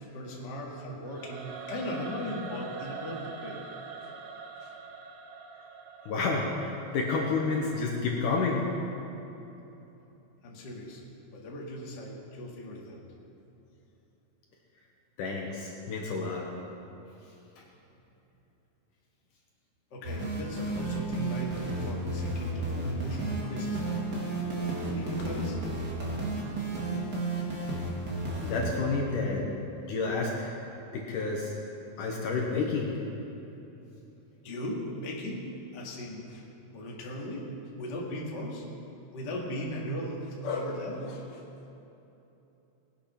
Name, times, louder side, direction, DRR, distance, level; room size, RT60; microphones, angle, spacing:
voice 1, 0.0-3.6 4.6-4.7 10.4-11.0 11.3-13.0 19.9-24.1 24.8-25.6 34.4-36.5 36.7-38.6 39.1-41.4, left 1 dB, 40° left, -3 dB, 1.7 m, -37 dB
Singing / Musical instrument, 1.0-8.1, right 5 dB, 75° right, 3.0 m, -44 dB
voice 2, 6.1-8.7 15.2-16.5 28.4-29.5 29.8-30.5 30.9-31.5 32.0-33.0, left 4 dB, 65° left, -1 dB, 2.5 m, -30 dB
sound 1, 20.0-28.7, right 2 dB, 30° right, 2.2 m, -32 dB
20.0 x 8.7 x 5.9 m, 3.0 s
omnidirectional pair, 4.6 m